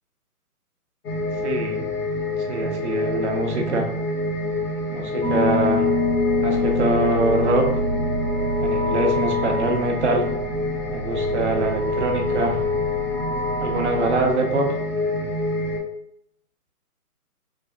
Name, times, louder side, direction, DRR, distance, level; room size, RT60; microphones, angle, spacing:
sound 1, 1.0-15.8, left 2 dB, 80° left, 0.9 m, -26 dB
voice 1, 1.4-1.9 2.5-3.9 4.9-5.8 6.4-7.7 8.6-10.3 10.9-12.6 13.6-14.7, right 2 dB, 50° right, 2 dB, 0.6 m, -24 dB
sound 2, 5.2-14.3, left 1 dB, ahead, 0.5 m, -27 dB
3.3 x 2.0 x 2.3 m, 0.75 s
hypercardioid pair, 145°, 46 cm